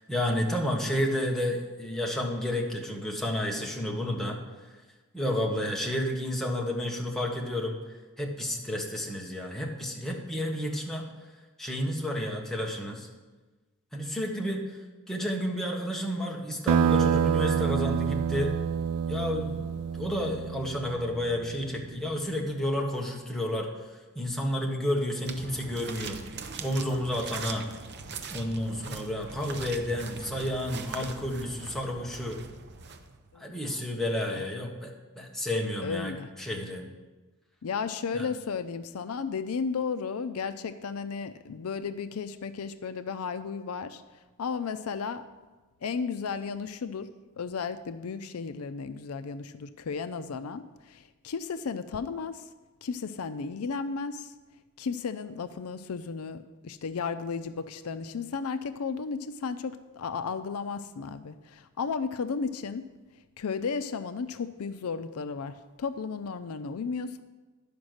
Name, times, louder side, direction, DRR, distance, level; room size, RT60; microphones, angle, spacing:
voice 1, 0.0-4.4 5.1-7.8 8.2-11.1 11.6-13.1 13.9-14.6 15.1-18.5 19.1-23.7 24.1-26.2 26.6-27.7 28.3-32.4 33.3-36.9 38.1-38.3, left 1 dB, ahead, -1 dB, 1.3 m, -31 dB
sound 1, 16.7-21.8, right 7 dB, 80° right, 0.3 m, -27 dB
sound 2, 25.2-33.4, right 5 dB, 55° right, 0.7 m, -41 dB
voice 2, 33.3-33.8 34.3-34.4 35.8-36.3 37.6-44.0 44.4-45.2 45.8-47.1 47.4-52.4 52.8-54.3 54.8-62.9 63.4-67.2, left 5 dB, 85° left, 11 dB, 0.5 m, -34 dB
11.0 x 5.2 x 6.4 m, 1.2 s
head